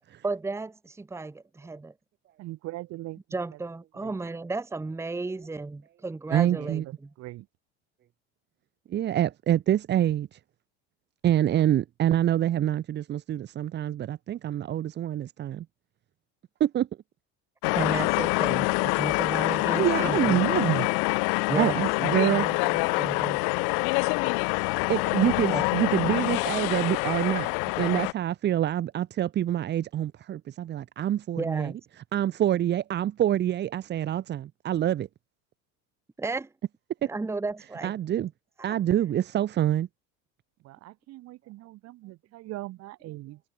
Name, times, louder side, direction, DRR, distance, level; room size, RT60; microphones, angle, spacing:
voice 1, 0.2-1.9 3.3-6.8 17.7-20.4 21.5-23.4 25.5-25.6 31.4-31.8 36.2-36.5 37.1-37.9 38.6-38.8, right 3 dB, 10° right, 1.9 m, -33 dB
voice 2, 2.4-3.2 4.0-4.1 6.5-7.5 40.6-43.4, right 18 dB, 50° right, 3.5 m, -41 dB
voice 3, 6.3-6.9 8.9-10.4 11.2-15.7 16.6-16.9 19.7-20.9 21.6-22.5 24.9-27.5 27.8-35.1 37.6-38.3 38.6-39.9, right 11 dB, 35° right, 1.7 m, -26 dB
sound 1, 17.6-28.1, left 40 dB or more, 65° left, 0.8 m, -26 dB
cardioid pair, 150°, 32 cm